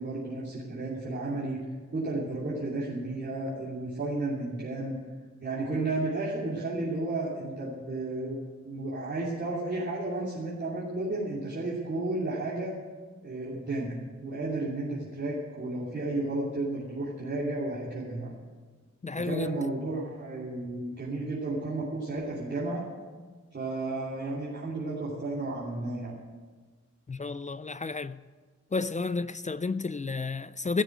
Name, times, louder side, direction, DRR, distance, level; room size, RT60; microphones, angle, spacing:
voice 1, 0.0-1.6 1.9-5.0 5.4-8.4 8.6-12.7 13.2-18.3 19.2-22.8 23.5-26.2, right 2 dB, 40° right, 2.9 m, -32 dB
voice 2, 19.0-19.5 27.1-28.2 28.7-30.8, left 4 dB, 25° left, 0.4 m, -31 dB
16.5 x 7.1 x 9.2 m
wide cardioid pair, 135°, 29 cm